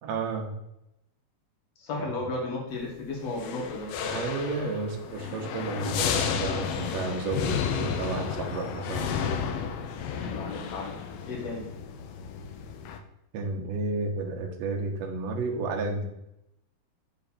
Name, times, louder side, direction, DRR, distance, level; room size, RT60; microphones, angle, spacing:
voice 1, 0.0-0.5 4.0-9.2 13.3-16.1, right 3 dB, 70° right, 1 dB, 1.7 m, -32 dB
voice 2, 1.8-3.9 10.1-10.9 11.3-11.6, left 2 dB, 55° left, -2 dB, 2.5 m, -34 dB
sound 1, 3.3-13.0, left 7 dB, 85° left, 2.3 m, -32 dB
7.0 x 3.9 x 4.2 m, 0.82 s
omnidirectional pair, 3.9 m